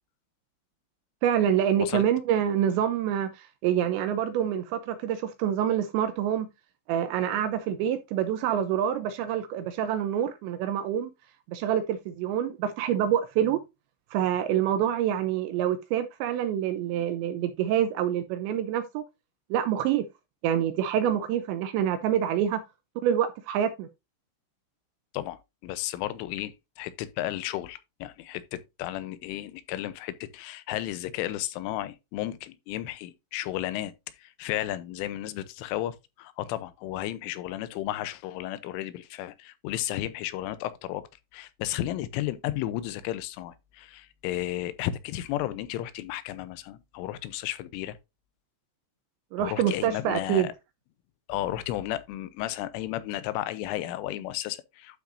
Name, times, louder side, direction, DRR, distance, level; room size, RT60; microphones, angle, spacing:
voice 1, 1.2-6.5 6.9-11.1 11.5-13.6 14.1-19.0 19.5-20.1 20.4-22.6 23.0-23.9 49.3-50.5, right 10 dB, 80° right, 2.7 m, -26 dB
voice 2, 25.1-33.9 34.2-48.0 49.4-50.5 51.3-55.0, left 14 dB, 85° left, 3.3 m, -33 dB
12.0 x 5.9 x 2.6 m
omnidirectional pair, 5.7 m